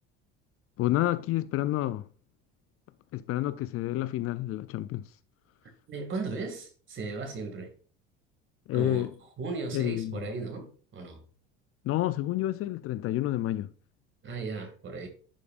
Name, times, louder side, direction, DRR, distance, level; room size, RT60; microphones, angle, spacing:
voice 1, 0.8-2.1 3.1-5.1 8.7-9.1 9.7-10.3 11.8-13.7, left 15 dB, 50° left, 0.4 m, -29 dB
voice 2, 5.9-7.7 8.7-9.1 9.4-11.2 14.2-15.1, right 4 dB, 40° right, 2.3 m, -36 dB
11.0 x 4.9 x 2.5 m
supercardioid pair, 90°, 31 cm